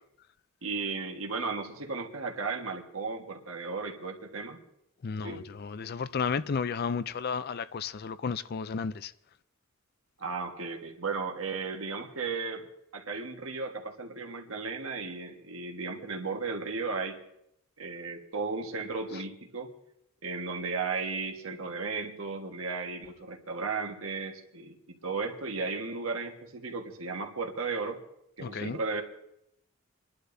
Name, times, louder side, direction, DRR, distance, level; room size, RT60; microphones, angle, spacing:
voice 1, 0.6-4.6 5.2-5.4 10.2-12.7 12.9-17.2 17.8-19.7 20.2-28.0 28.4-29.0, right 4 dB, 75° right, 1.5 m, -35 dB
voice 2, 5.0-9.1 28.4-28.8, left 5 dB, 50° left, 0.4 m, -33 dB
28.5 x 11.5 x 2.7 m
head